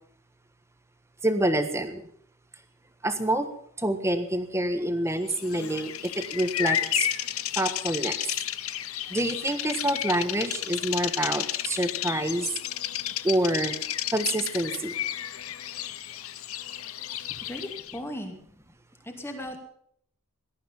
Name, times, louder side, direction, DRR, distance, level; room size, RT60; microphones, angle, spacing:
voice 1, 1.2-2.0 3.0-3.5 3.8-7.1 7.6-8.2 9.1-12.5 13.2-13.8 14.1-15.0, right 1 dB, 15° right, 9 dB, 1.3 m, -27 dB
Bird vocalization bird call bird song, 5.3-18.0, left 11 dB, 80° left, 0.8 m, -32 dB
voice 2, 17.1-18.3 19.0-19.6, left 1 dB, 10° left, 3 dB, 2.6 m, -37 dB
18.0 x 12.5 x 5.6 m, 0.65 s
head